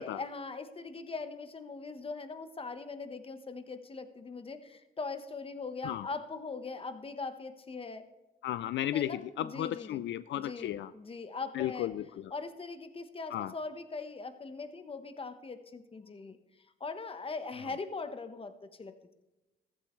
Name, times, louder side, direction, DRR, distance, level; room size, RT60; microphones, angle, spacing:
voice 1, 0.0-8.1 8.9-10.0 10.3-11.9 12.3-16.4 16.8-19.1, left 4 dB, 30° left, 9 dB, 1.1 m, -41 dB
voice 2, 8.4-10.9 11.5-12.3 13.3-13.5, left 12 dB, 65° left, 15 dB, 0.4 m, -34 dB
14.5 x 14.5 x 3.2 m, 1.1 s
cardioid pair, 90°, 20 cm